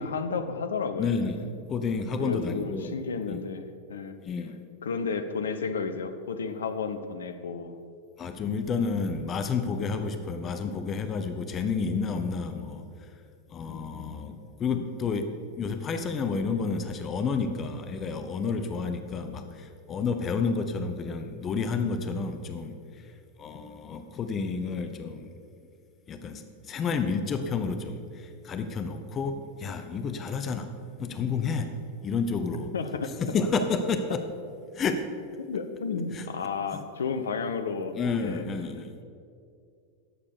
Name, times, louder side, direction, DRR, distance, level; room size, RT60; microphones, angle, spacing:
voice 1, 0.0-1.1 2.2-4.2 4.8-7.8 30.1-30.3 32.7-33.1 35.4-38.4, left 5 dB, 65° left, 9 dB, 0.8 m, -32 dB
voice 2, 1.0-3.0 3.3-3.4 4.2-4.6 8.2-13.2 13.5-25.3 26.1-30.7 31.0-31.7 32.0-32.7 33.2-34.2 34.7-35.1 36.1-36.3 37.9-38.9, left 5 dB, 25° left, 8 dB, 0.8 m, -30 dB
11.0 x 7.4 x 6.6 m, 2.4 s
figure-of-eight pair, 90°, 0 cm